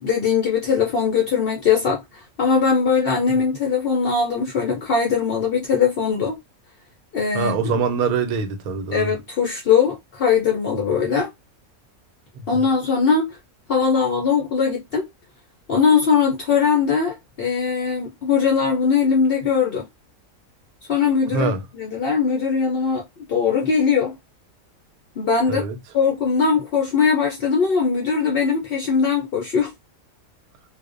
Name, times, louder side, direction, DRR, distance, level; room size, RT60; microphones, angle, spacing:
voice 1, 0.0-6.4 7.1-7.7 8.9-11.3 12.5-13.4 13.7-15.1 15.7-19.8 20.9-24.2 25.2-25.6 25.9-29.7, left 6 dB, 65° left, 0.5 m, -20 dB
voice 2, 7.3-9.1 12.5-12.6 21.3-21.6 25.5-25.7, right 5 dB, 85° right, 1.0 m, -23 dB
2.4 x 2.1 x 2.4 m
omnidirectional pair, 1.5 m